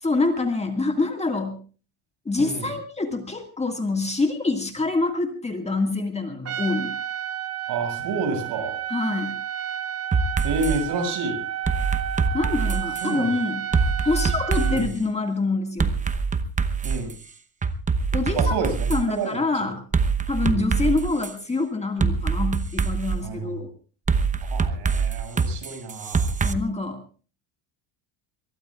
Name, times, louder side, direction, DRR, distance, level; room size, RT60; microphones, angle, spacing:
voice 1, 0.0-1.6 2.3-6.9 8.9-9.4 12.3-13.7 14.0-15.9 18.1-18.6 18.9-19.8 20.3-23.7 26.4-27.2, left 3 dB, 15° left, 4 dB, 2.0 m, -26 dB
voice 2, 2.4-2.7 7.7-8.8 10.4-11.4 13.0-13.3 14.7-14.9 16.8-17.1 18.3-19.7 20.5-20.6 23.2-23.5 24.5-26.3, right 4 dB, 60° right, 5 dB, 6.5 m, -29 dB
Trumpet, 6.4-14.9, right 10 dB, 30° right, 1.4 m, -31 dB
sound 1, 10.1-10.8 11.7-13.1 13.7-14.9 15.8-17.1 17.6-19.0 19.9-21.3 22.0-23.2 24.1-26.5, right 5 dB, 15° right, 0.9 m, -24 dB
23.5 x 22.0 x 2.4 m, 0.39 s
cardioid pair, 135°, 46 cm